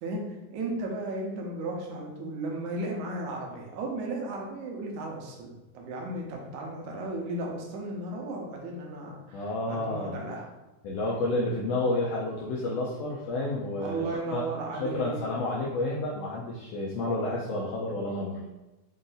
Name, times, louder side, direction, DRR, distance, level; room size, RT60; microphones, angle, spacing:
voice 1, 0.5-10.5 13.8-15.3 18.0-18.1, right 2 dB, 80° right, 0 dB, 2.2 m, -35 dB
voice 2, 9.3-10.2 10.8-14.0 14.3-14.5 14.8-18.4, left 2 dB, 80° left, -4 dB, 1.4 m, -30 dB
5.3 x 2.6 x 3.9 m, 1.1 s
omnidirectional pair, 3.5 m